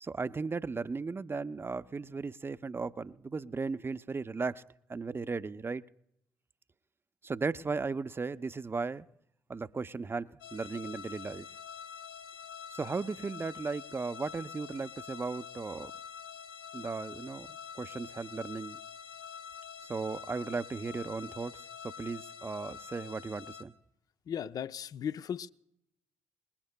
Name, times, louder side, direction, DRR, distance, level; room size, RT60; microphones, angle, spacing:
voice 1, 0.0-4.6 4.9-5.8 7.2-9.1 9.5-11.5 12.7-15.9 16.7-17.5 17.7-18.8 19.8-21.7 22.0-23.7, right 4 dB, 30° right, 0.6 m, -36 dB
sound 1, 10.4-23.6, left 7 dB, 75° left, 1.6 m, -46 dB
voice 2, 24.3-25.5, left 8 dB, 55° left, 0.5 m, -36 dB
26.5 x 21.0 x 2.2 m
hypercardioid pair, 45°, 8 cm